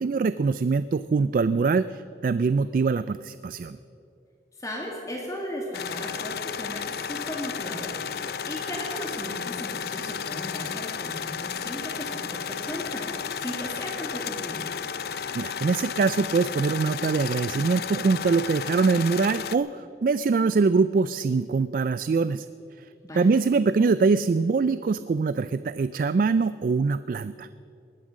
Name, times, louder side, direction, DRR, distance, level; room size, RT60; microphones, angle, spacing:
voice 1, 0.0-3.8 15.1-22.5 23.1-27.5, right 4 dB, 50° right, 14 dB, 0.3 m, -23 dB
voice 2, 4.6-14.6 23.0-23.3, equal, 20° left, -2 dB, 1.9 m, -36 dB
sound 1, 5.7-19.6, left 7 dB, 60° left, 0.5 m, -33 dB
19.5 x 11.0 x 6.3 m, 2.6 s
head